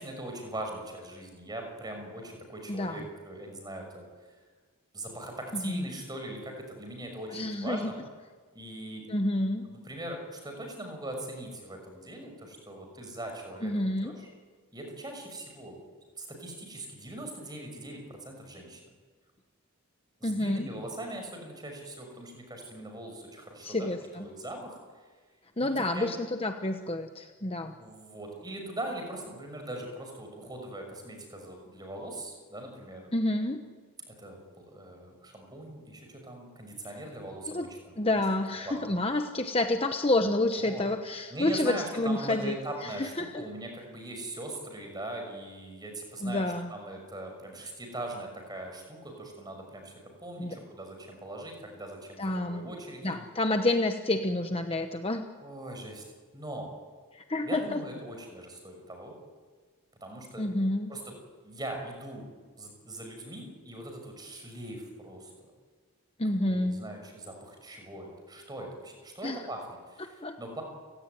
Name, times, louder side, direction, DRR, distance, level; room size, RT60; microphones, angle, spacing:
voice 1, 0.0-4.0 4.9-7.9 8.5-9.0 9.7-14.3 14.7-15.8 16.2-18.9 20.2-23.9 24.2-24.8 25.6-26.1 27.8-33.1 34.1-38.0 38.6-38.9 40.6-40.8 41.3-46.4 46.7-49.9 50.2-53.2 55.4-56.0 56.3-56.7 57.4-59.1 60.0-60.5 60.9-61.1 61.4-62.3 62.6-65.3 66.5-70.6, right 1 dB, 20° right, 3 dB, 6.2 m, -41 dB
voice 2, 2.7-3.1 5.5-5.9 7.3-7.9 9.1-9.7 13.6-14.1 20.2-20.7 23.6-24.3 25.6-27.8 33.1-33.7 37.5-37.7 38.0-42.5 42.8-43.5 46.2-46.7 50.4-50.6 52.2-52.7 53.0-55.3 57.1-57.8 60.4-60.9 66.2-66.8 69.2-69.4 70.0-70.4, left 1 dB, 25° left, 6 dB, 1.1 m, -29 dB
30.0 x 17.5 x 9.5 m, 1.5 s
head